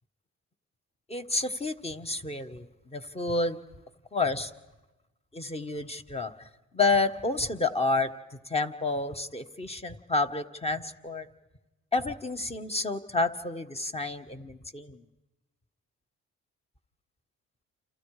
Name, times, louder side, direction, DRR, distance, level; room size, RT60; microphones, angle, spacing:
voice 1, 1.1-3.6 4.1-4.5 5.3-6.3 6.7-8.1 8.5-11.3 11.9-15.0, left 3 dB, 20° left, 8 dB, 1.6 m, -29 dB
29.5 x 28.5 x 5.0 m, 1.1 s
cardioid pair, 90°, 30 cm